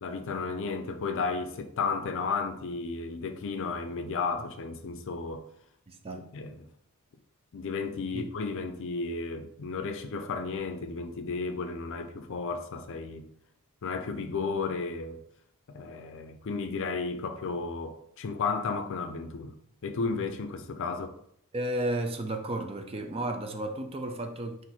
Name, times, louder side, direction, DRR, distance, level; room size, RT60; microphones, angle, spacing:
voice 1, 0.0-5.5 6.3-6.7 7.5-13.2 13.8-15.2 15.7-19.6 19.8-21.2, left 4 dB, 60° left, 0.5 m, -33 dB
voice 2, 5.9-6.2 8.1-8.3 21.5-24.6, right 1 dB, 25° right, 0.5 m, -33 dB
4.3 x 2.6 x 4.1 m
head